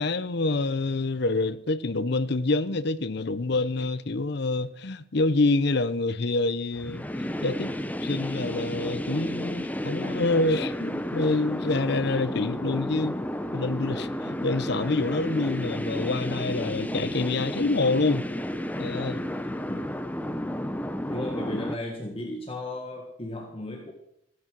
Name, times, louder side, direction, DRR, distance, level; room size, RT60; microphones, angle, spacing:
voice 1, 0.0-7.7 8.0-13.2 13.5-18.3 18.8-19.2, left 3 dB, 55° left, 0.7 m, -27 dB
sound 1, 6.8-21.7, left 1 dB, 10° left, 0.6 m, -32 dB
voice 2, 19.6-20.0 21.1-23.9, left 1 dB, 30° left, 1.6 m, -35 dB
15.0 x 9.5 x 6.2 m
head